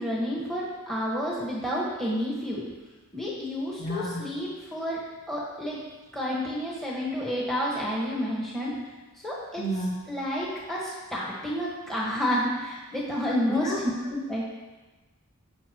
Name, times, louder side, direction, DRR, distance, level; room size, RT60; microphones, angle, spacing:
voice 1, 0.0-2.6 3.1-5.0 5.3-5.8 6.1-8.7 9.2-9.6 10.1-14.4, equal, ahead, -6 dB, 1.5 m, -30 dB
voice 2, 3.8-4.2 9.6-10.0 13.5-13.8, right 1 dB, 55° left, -5 dB, 2.3 m, -30 dB
15.5 x 5.4 x 3.0 m, 1.2 s
head